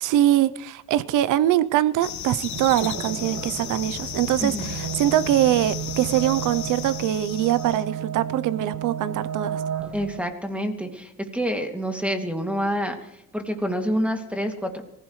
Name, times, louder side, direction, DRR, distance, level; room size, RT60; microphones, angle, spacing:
voice 1, 0.0-9.6, right 12 dB, 90° right, 0.7 m, -23 dB
sound 1, 2.0-7.8, left 9 dB, 70° left, 1.7 m, -34 dB
sound 2, 2.5-10.2, right 9 dB, 65° right, 1.6 m, -33 dB
voice 2, 4.4-4.7 9.9-14.8, equal, 5° right, 2.4 m, -27 dB
25.0 x 15.5 x 3.2 m
cardioid pair, 90°, 30 cm